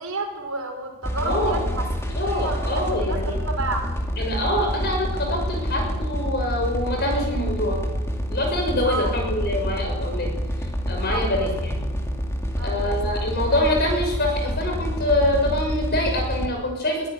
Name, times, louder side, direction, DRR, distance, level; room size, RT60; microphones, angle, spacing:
voice 1, 0.0-3.8 8.8-9.1 11.1-11.5 12.6-13.3, right 3 dB, 75° right, 2 dB, 5.2 m, -31 dB
sound 1, 1.0-16.5, equal, 10° left, 2.4 m, -27 dB
voice 2, 1.2-1.7 2.2-3.4 4.2-7.8 8.3-10.3 10.9-11.8 12.6-17.1, left 1 dB, 45° left, 2 dB, 6.5 m, -25 dB
22.5 x 14.5 x 9.8 m, 1.2 s
head